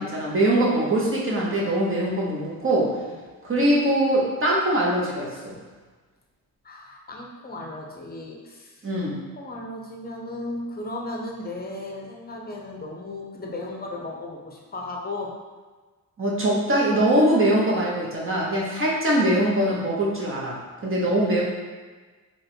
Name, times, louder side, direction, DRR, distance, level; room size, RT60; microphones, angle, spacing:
voice 1, 0.0-2.9 3.4-5.6 8.8-9.2 16.2-20.6 20.8-21.4, right 1 dB, 35° right, -4 dB, 1.1 m, -22 dB
voice 2, 6.6-8.9 9.4-15.4, left 2 dB, 25° left, 0 dB, 0.7 m, -35 dB
3.1 x 2.5 x 4.3 m, 1.4 s
cardioid pair, 90°, 35 cm